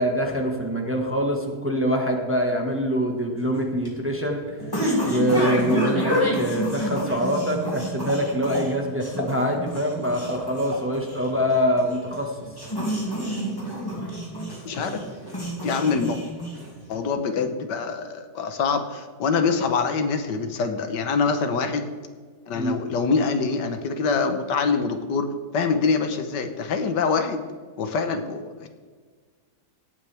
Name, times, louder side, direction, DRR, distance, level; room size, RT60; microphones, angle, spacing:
voice 1, 0.0-4.4 5.0-12.3 22.5-22.8, equal, 10° right, 1 dB, 1.4 m, -24 dB
sound 1, 3.4-16.9, equal, 15° left, 2.7 m, -29 dB
voice 2, 14.7-15.0 15.4-16.2 16.9-21.9 22.5-27.4 27.8-28.7, left 5 dB, 90° left, 8 dB, 1.7 m, -25 dB
18.0 x 8.8 x 3.5 m, 1.5 s
omnidirectional pair, 1.8 m